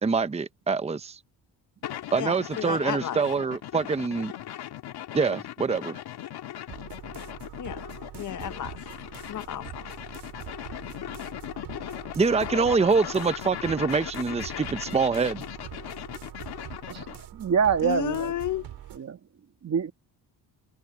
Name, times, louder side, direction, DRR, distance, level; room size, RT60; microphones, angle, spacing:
voice 1, 0.0-1.2 2.1-4.3 5.1-6.0 12.2-15.4, right 4 dB, 15° right, 0.8 m, -25 dB
sound 1, 1.8-17.2, left 11 dB, 70° left, 2.1 m, -38 dB
voice 2, 2.2-3.2 7.6-7.8 8.2-8.8 9.3-9.9 17.8-18.7, left 11 dB, 50° left, 1.0 m, -32 dB
sound 2, 6.7-19.0, right 13 dB, 85° right, 3.9 m, -44 dB
voice 3, 17.4-18.3 19.0-19.2 19.6-19.9, right 7 dB, 40° right, 2.1 m, -25 dB
cardioid pair, 125°, 40 cm